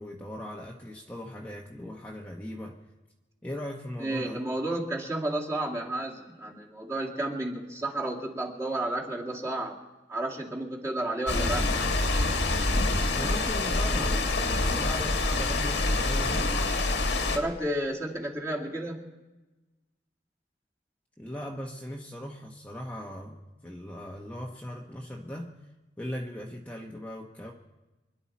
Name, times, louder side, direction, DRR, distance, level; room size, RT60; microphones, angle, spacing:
voice 1, 0.0-2.8 3.4-4.4 13.1-16.5 21.2-25.5 26.0-27.5, left 1 dB, 10° left, -2 dB, 1.0 m, -39 dB
voice 2, 4.0-9.8 10.1-11.7 17.2-19.0, right 1 dB, 20° right, -2 dB, 2.2 m, -32 dB
sound 1, 11.3-17.4, left 2 dB, 75° left, 1.7 m, -26 dB
25.5 x 11.0 x 4.2 m, 1.1 s
head